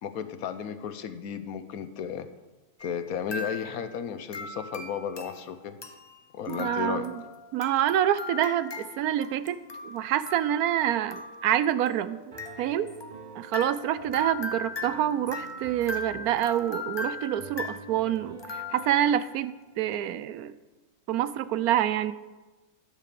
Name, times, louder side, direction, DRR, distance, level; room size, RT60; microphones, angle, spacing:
voice 1, 0.0-2.3 2.8-5.8 6.3-7.1, left 8 dB, 75° left, 11 dB, 1.2 m, -34 dB
sound 1, 2.8-3.1 3.3-4.0 4.3-19.2, left 3 dB, 30° left, 0.5 m, -39 dB
voice 2, 6.5-7.1 7.5-9.6 9.8-12.9 13.4-20.5 21.1-22.1, right 11 dB, 80° right, 15 dB, 1.1 m, -27 dB
Piano, 12.3-19.2, right 4 dB, 60° right, 0.4 m, -48 dB
12.0 x 6.8 x 6.8 m, 1.2 s
omnidirectional pair, 1.6 m